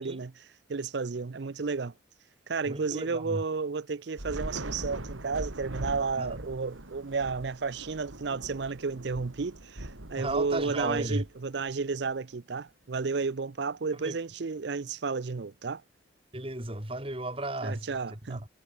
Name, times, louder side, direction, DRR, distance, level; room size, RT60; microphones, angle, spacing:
voice 1, 0.0-1.9 2.5-15.8 17.6-18.5, right 4 dB, 60° right, 0.5 m, -32 dB
voice 2, 2.7-3.4 6.2-6.4 10.2-11.2 14.0-14.2 16.3-18.5, right 1 dB, 30° right, 3.4 m, -34 dB
Thunder / Rain, 4.2-11.7, right 1 dB, 90° right, 3.3 m, -41 dB
head